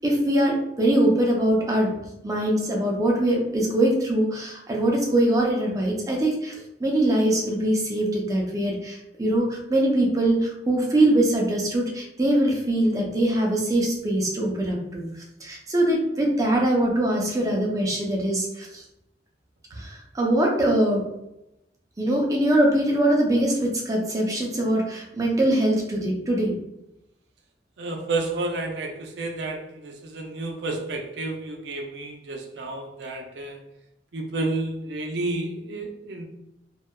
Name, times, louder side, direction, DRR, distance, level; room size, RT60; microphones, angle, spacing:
voice 1, 0.0-2.0 2.2-15.1 15.4-18.8 19.7-21.0 22.0-26.5, right 1 dB, 20° right, -1 dB, 0.4 m, -22 dB
voice 2, 27.8-33.6 34.1-36.2, right 2 dB, 75° right, 3 dB, 0.5 m, -31 dB
2.7 x 2.3 x 2.2 m, 0.86 s
head